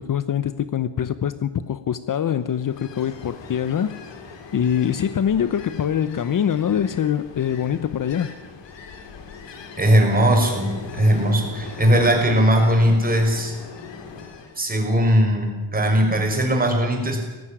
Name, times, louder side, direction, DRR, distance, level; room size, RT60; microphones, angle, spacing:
voice 1, 0.0-3.9 4.5-8.3, left 9 dB, 50° left, 0.9 m, -24 dB
Ocean, 2.4-14.6, left 5 dB, 85° left, 3.0 m, -39 dB
voice 2, 9.8-13.5 14.1-14.2 14.6-17.2, equal, 20° right, 5.7 m, -19 dB
17.5 x 15.0 x 10.0 m
cardioid pair, 110°, 42 cm